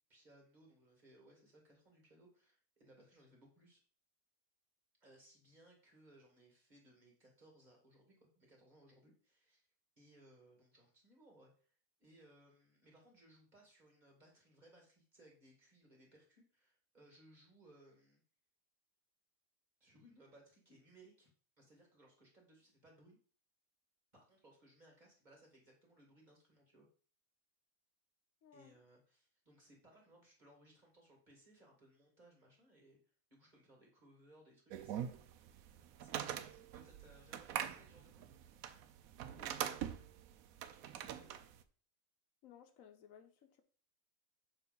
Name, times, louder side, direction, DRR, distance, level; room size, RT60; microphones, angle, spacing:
voice 1, 0.1-3.8 5.0-9.7 10.0-18.2 19.8-21.3 21.6-23.2 24.1-26.9 28.5-33.0 33.3-35.5 36.0-38.3 40.8-41.3, right 1 dB, 30° right, -1 dB, 2.2 m, -65 dB
voice 2, 28.4-28.7 39.4-39.9 42.4-43.6, left 9 dB, 75° left, 8 dB, 1.1 m, -60 dB
sound 1, 34.7-41.6, right 10 dB, 90° right, 1.0 m, -43 dB
6.7 x 3.4 x 5.4 m, 0.42 s
omnidirectional pair, 1.4 m